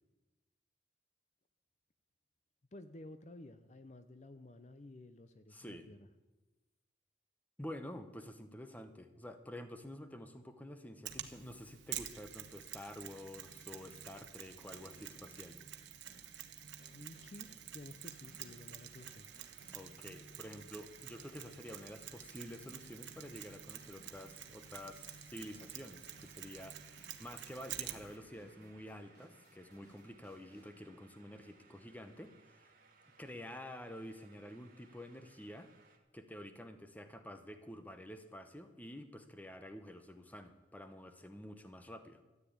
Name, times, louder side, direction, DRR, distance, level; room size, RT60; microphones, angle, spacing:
voice 1, 2.7-6.0 16.9-19.3, left 2 dB, 40° left, 10 dB, 0.6 m, -53 dB
voice 2, 5.5-5.9 7.6-15.6 19.7-32.7 33.2-35.7 36.1-42.2, left 1 dB, 10° left, 8 dB, 0.9 m, -49 dB
Mechanisms, 11.1-28.2, right 10 dB, 80° right, 1.1 m, -49 dB
sound 1, 13.3-30.8, equal, 55° left, 2.4 m, -66 dB
sound 2, 18.0-36.0, right 4 dB, 50° right, 1.8 m, -66 dB
13.5 x 9.4 x 8.6 m, 1.1 s
head